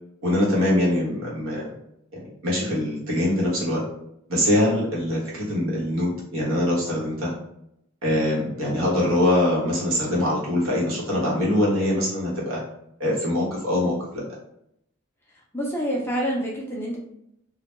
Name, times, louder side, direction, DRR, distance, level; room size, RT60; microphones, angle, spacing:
voice 1, 0.2-1.7 2.1-3.8 4.3-7.4 8.0-12.6 13.0-14.2, left 1 dB, 75° right, -4 dB, 1.0 m, -23 dB
voice 2, 15.5-17.0, equal, 10° left, -2 dB, 0.4 m, -27 dB
2.2 x 2.1 x 2.9 m, 0.76 s
head